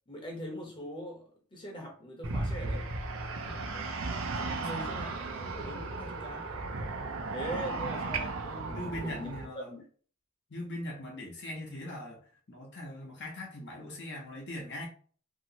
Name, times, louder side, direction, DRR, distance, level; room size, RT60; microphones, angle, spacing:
voice 1, 0.1-2.9 3.3-5.1 5.4-6.5 7.3-9.3 9.7-9.8, equal, 25° left, 0.9 m, -42 dB
sound 1, 2.2-9.5, right 3 dB, 75° right, 0.6 m, -35 dB
voice 2, 4.5-5.1 8.7-9.7 10.5-12.2 12.5-14.9, left 1 dB, 55° left, 0.9 m, -41 dB
3.0 x 2.9 x 2.8 m
head